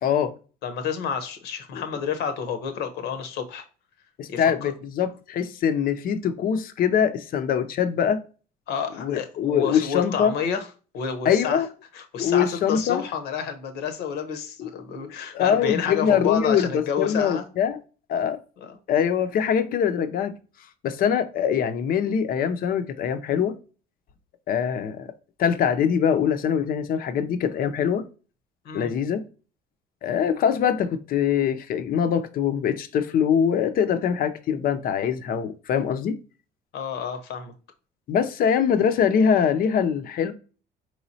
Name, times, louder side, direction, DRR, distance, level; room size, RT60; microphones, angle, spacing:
voice 1, 0.0-0.3 1.7-1.8 4.2-8.2 9.0-10.3 11.2-11.7 12.2-13.0 14.6-14.7 15.0-17.8 18.1-18.4 18.9-20.4 20.8-23.6 24.5-25.1 25.4-28.1 28.7-29.2 30.0-36.2 38.1-40.3, left 8 dB, 60° left, 0.6 m, -23 dB
voice 2, 0.6-3.6 4.3-4.7 8.7-10.6 10.9-11.6 11.9-17.4 18.6-18.7 28.6-28.9 36.7-37.5, left 7 dB, 80° left, 0.9 m, -29 dB
4.7 x 3.1 x 2.7 m
cardioid pair, 110°, 17 cm